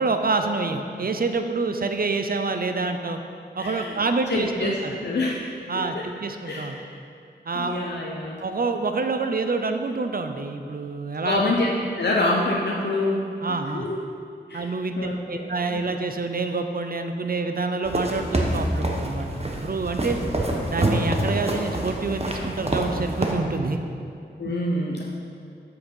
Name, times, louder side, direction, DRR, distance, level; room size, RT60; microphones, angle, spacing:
voice 1, 0.0-3.2 3.5-4.9 5.7-6.8 7.5-7.9 8.4-11.4 13.4-13.9 14.5-20.2 20.7-23.8, right 3 dB, 50° right, 6 dB, 0.7 m, -27 dB
voice 2, 3.6-4.0 4.3-5.5 5.7-6.0 6.5-6.8 7.5-8.4 11.2-11.7 11.9-13.3 13.7-14.0 14.5-14.7 15.0-15.8 24.4-25.0, left 2 dB, 65° left, -3 dB, 0.9 m, -26 dB
sound 1, 17.8-23.3, right 1 dB, 35° right, 1.2 m, -26 dB
7.7 x 6.4 x 5.5 m, 2.4 s
cardioid pair, 40°, 19 cm